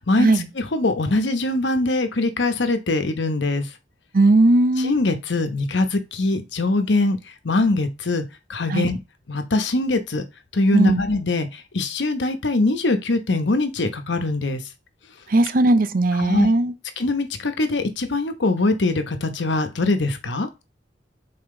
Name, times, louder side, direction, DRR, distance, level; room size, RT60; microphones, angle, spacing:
voice 1, 0.0-3.6 4.8-7.2 7.4-8.2 8.5-9.0 9.3-10.2 10.5-14.6 16.2-16.5 17.0-20.5, left 2 dB, 85° left, 1.0 m, -22 dB
voice 2, 4.1-5.0 8.7-8.9 10.7-11.0 15.3-16.7, right 2 dB, 50° right, 0.6 m, -18 dB
5.9 x 4.2 x 3.8 m
head